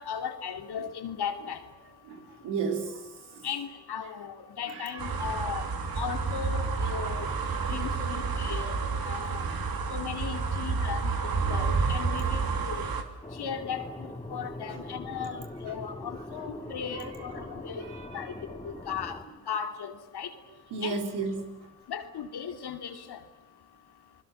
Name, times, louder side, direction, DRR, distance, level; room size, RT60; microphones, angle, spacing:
voice 1, 0.0-1.6 3.4-5.6 6.0-7.3 7.7-8.8 9.1-9.4 9.9-12.9 13.4-17.8 18.1-19.2 19.5-20.3 20.8-21.0 21.9-23.2, left 7 dB, 75° left, 7 dB, 2.6 m, -37 dB
voice 2, 2.1-2.9 4.7-5.0 14.7-14.8 17.9-18.1 20.7-21.4, right 4 dB, 90° right, 4 dB, 3.5 m, -32 dB
sound 1, 5.0-13.0, right 4 dB, 65° right, 2.8 m, -30 dB
sound 2, 13.2-19.2, left 1 dB, 15° left, 3.3 m, -42 dB
29.0 x 20.5 x 7.1 m, 1.1 s
supercardioid pair, 45°, 39 cm